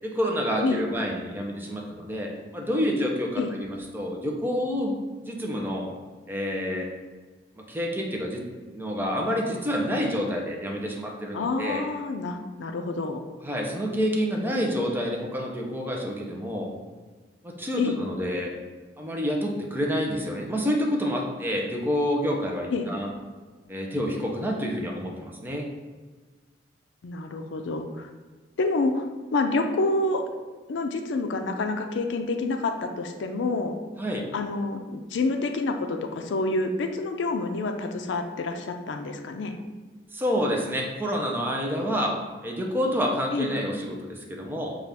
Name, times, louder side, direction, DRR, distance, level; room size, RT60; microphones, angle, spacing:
voice 1, 0.0-4.9 5.3-5.9 6.3-6.9 7.7-8.4 8.7-11.9 13.4-16.7 17.4-18.5 19.0-23.1 23.7-25.7 34.0-34.3 40.1-42.1 42.4-44.8, equal, 10° right, 0 dB, 0.5 m, -28 dB
voice 2, 11.3-13.2 17.8-18.0 22.7-22.9 27.0-28.1 28.6-30.3 30.7-33.8 34.3-39.6 43.3-43.5, left 3 dB, 75° left, 6 dB, 0.4 m, -28 dB
5.4 x 2.4 x 3.4 m, 1.4 s
head